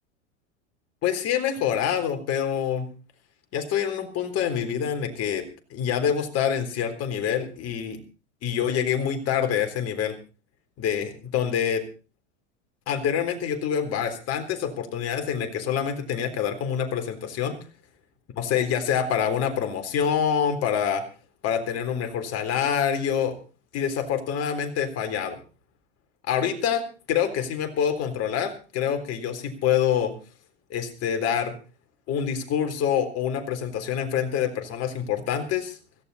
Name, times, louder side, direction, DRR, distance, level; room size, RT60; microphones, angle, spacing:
voice 1, 1.0-2.9 3.5-5.4 5.7-8.0 8.4-10.2 10.8-11.8 12.9-17.6 18.4-21.0 21.4-23.3 23.7-25.4 26.3-26.8 27.1-30.1 30.7-31.5 32.1-35.8, left 8 dB, 40° left, 6 dB, 3.7 m, -26 dB
17.0 x 15.0 x 4.2 m, 0.35 s
hypercardioid pair, 110°, 36 cm